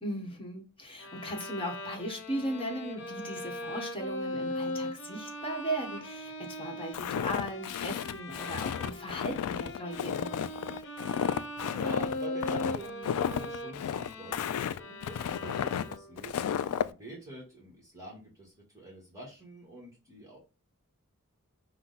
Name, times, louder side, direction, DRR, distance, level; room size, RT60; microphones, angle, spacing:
voice 1, 0.0-10.3, equal, 25° left, 1.2 m, -37 dB
Bowed string instrument, 1.0-16.3, left 1 dB, 55° left, 0.8 m, -40 dB
Walk footsteps, 6.9-16.9, left 8 dB, 75° left, 0.3 m, -33 dB
voice 2, 11.6-20.4, right 1 dB, 15° right, 1.3 m, -46 dB
5.7 x 2.2 x 4.0 m
head